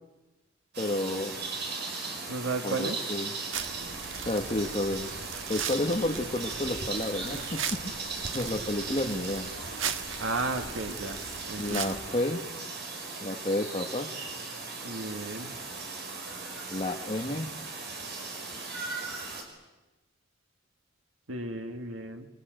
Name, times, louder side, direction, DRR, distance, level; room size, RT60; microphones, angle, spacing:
sound 1, 0.7-19.4, right 3 dB, 60° right, 5.4 m, -38 dB
voice 1, 0.8-1.3 2.6-3.3 4.2-5.1 5.4-7.9 8.3-9.5 11.6-12.5 13.2-14.1 16.7-17.5, left 1 dB, 30° left, 1 dB, 1.6 m, -31 dB
voice 2, 2.3-3.0 10.2-11.2 11.5-11.9 14.8-15.5 21.3-22.3, right 3 dB, 90° right, 6 dB, 1.8 m, -33 dB
sound 2, 3.5-12.2, right 7 dB, 75° right, 1.6 m, -38 dB
25.5 x 23.5 x 9.1 m, 1.1 s
head